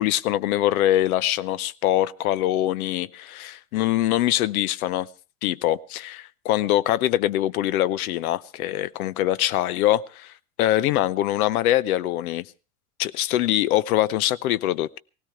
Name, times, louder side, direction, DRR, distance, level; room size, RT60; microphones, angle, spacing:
voice 1, 0.0-5.1 5.4-10.3 10.6-12.4 13.0-15.0, left 13 dB, 70° left, 19 dB, 0.6 m, -23 dB
17.5 x 16.5 x 3.5 m, 0.33 s
hypercardioid pair, 90°, 44 cm